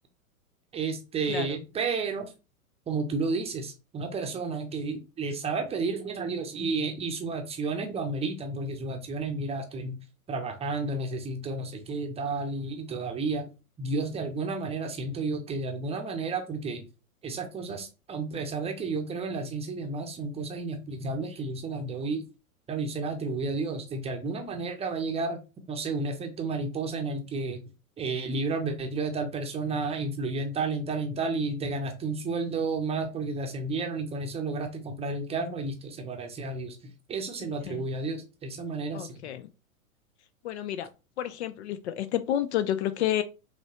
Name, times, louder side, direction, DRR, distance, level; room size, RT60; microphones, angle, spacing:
voice 1, 0.7-2.3 2.9-10.0 10.3-13.5 13.8-16.9 17.2-22.2 22.7-25.4 25.7-27.6 28.0-39.3, right 3 dB, 15° right, 0.7 m, -32 dB
voice 2, 37.4-37.9 38.9-39.5 40.4-40.9 41.2-43.2, left 11 dB, 50° left, 0.6 m, -30 dB
5.2 x 3.1 x 2.9 m
figure-of-eight pair, 100°, 43 cm